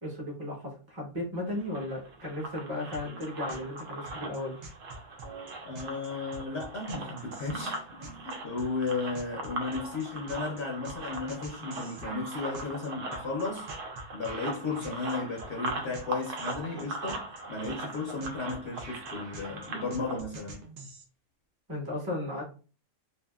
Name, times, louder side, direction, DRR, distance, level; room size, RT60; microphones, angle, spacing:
voice 1, 0.0-4.6 21.7-22.4, left 1 dB, 20° right, 0.9 m, -35 dB
sound 1, 1.5-20.2, right 2 dB, 80° right, 1.0 m, -40 dB
sound 2, 2.9-21.0, right 3 dB, 60° right, 0.7 m, -47 dB
voice 2, 5.6-13.7 14.1-20.6, left 3 dB, 65° left, 0.8 m, -35 dB
2.7 x 2.5 x 2.3 m
omnidirectional pair, 1.3 m